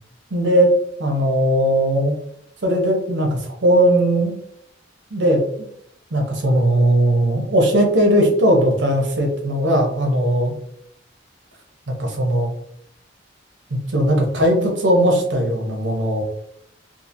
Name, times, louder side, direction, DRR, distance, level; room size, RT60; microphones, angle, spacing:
voice 1, 0.3-0.7 1.0-2.2 2.6-4.3 5.1-5.7 6.1-10.5 11.9-12.5 13.9-16.2, right 1 dB, 70° right, 2 dB, 0.8 m, -18 dB
3.0 x 2.5 x 2.5 m, 0.69 s
head